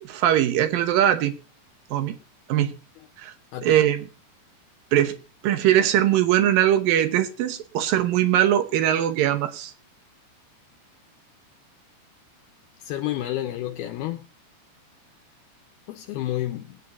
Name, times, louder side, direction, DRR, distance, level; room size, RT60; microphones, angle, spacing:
voice 1, 0.0-1.3 1.9-2.2 2.5-2.8 3.2-3.3 3.6-4.1 4.9-5.2 5.4-9.7, right 11 dB, 70° right, 2.4 m, -21 dB
voice 2, 3.5-3.8 12.8-14.2 15.9-16.8, left 13 dB, 75° left, 2.7 m, -30 dB
21.0 x 9.7 x 2.6 m
omnidirectional pair, 4.8 m